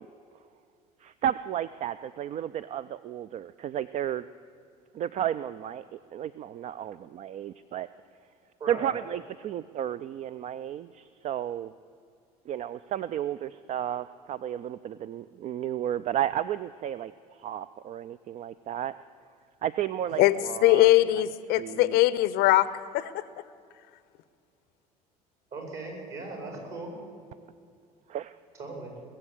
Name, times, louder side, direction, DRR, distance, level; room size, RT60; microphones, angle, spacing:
voice 1, 1.0-4.2 4.9-7.9 8.7-11.7 12.5-18.9 19.6-20.9 21.6-22.0 28.1-28.4, right 11 dB, 35° right, 15 dB, 0.4 m, -33 dB
voice 2, 8.6-9.0 25.5-26.9 28.6-28.9, right 3 dB, 55° right, 1 dB, 5.2 m, -38 dB
voice 3, 20.2-22.7 22.9-23.2, left 16 dB, 55° left, 16 dB, 0.6 m, -21 dB
21.0 x 7.6 x 8.1 m, 2.4 s
figure-of-eight pair, 65°, 20 cm